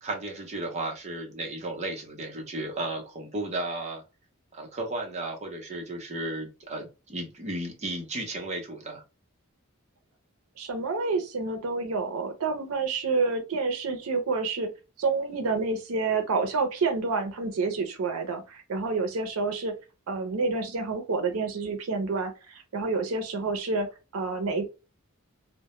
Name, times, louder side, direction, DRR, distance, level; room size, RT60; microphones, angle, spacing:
voice 1, 0.0-4.0 4.5-9.0, right 2 dB, 30° right, 0.6 m, -34 dB
voice 2, 10.6-14.7 15.0-19.7 20.1-23.9 24.1-24.7, right 4 dB, 85° right, 0.5 m, -28 dB
2.1 x 2.0 x 2.9 m
head